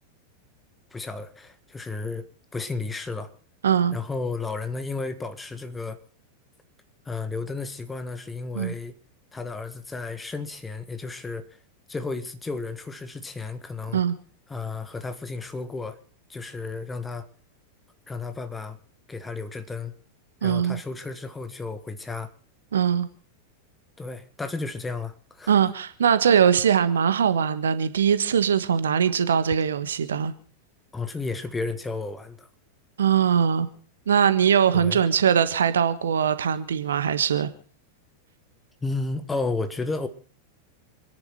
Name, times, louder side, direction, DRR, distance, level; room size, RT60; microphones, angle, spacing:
voice 1, 0.9-2.2 2.5-3.3 3.9-6.0 7.1-8.9 9.3-11.4 11.9-14.0 14.5-16.0 16.3-17.3 18.1-18.8 19.1-19.9 20.4-22.3 24.0-25.5 30.9-32.5 34.7-35.0 38.8-40.1, left 3 dB, 10° left, 1.7 m, -32 dB
voice 2, 3.6-3.9 8.5-8.7 13.9-14.1 20.4-20.8 22.7-23.1 25.5-30.3 33.0-33.7 34.1-37.5, right 8 dB, 65° right, 1.4 m, -21 dB
27.5 x 10.5 x 4.3 m
figure-of-eight pair, 90°, 0 cm